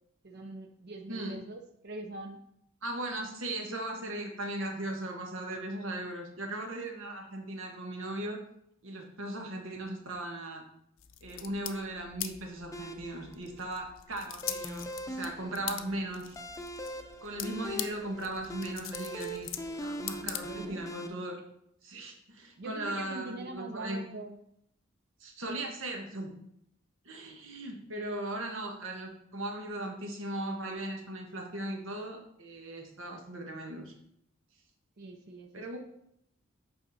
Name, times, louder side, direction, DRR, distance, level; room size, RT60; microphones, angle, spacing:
voice 1, 0.2-2.4 20.2-20.8 22.6-24.4 35.0-35.7, right 2 dB, 55° right, 5 dB, 0.6 m, -43 dB
voice 2, 2.8-8.4 8.8-10.6 11.2-16.3 17.2-19.5 19.8-21.4 21.8-24.0 25.2-26.3 27.0-33.9 35.5-35.8, right 1 dB, 80° right, 2 dB, 1.5 m, -38 dB
sound 1, 11.0-20.9, left 11 dB, 75° left, 0.6 m, -43 dB
sound 2, 12.7-21.1, equal, 15° left, 0.6 m, -41 dB
8.1 x 5.1 x 4.2 m, 0.74 s
head